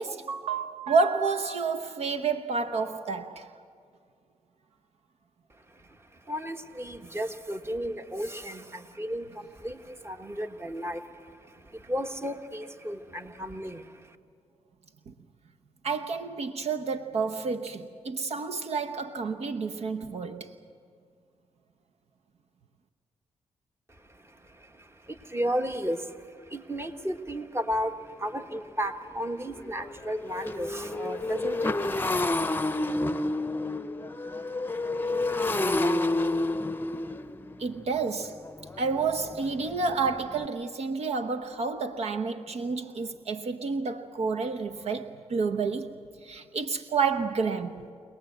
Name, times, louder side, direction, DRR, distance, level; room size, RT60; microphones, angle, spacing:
voice 1, 0.0-3.5 15.1-15.2 15.8-20.5 37.6-38.4 38.8-46.0 46.2-47.9, right 4 dB, 65° right, 0.9 m, -30 dB
voice 2, 5.7-14.2 23.9-32.4, equal, 20° right, 1.4 m, -34 dB
Motorcycle, 27.8-27.9 28.4-28.6 28.9-40.5, left 2 dB, 20° left, 0.7 m, -30 dB
24.5 x 18.5 x 7.9 m
cardioid pair, 65°, 12 cm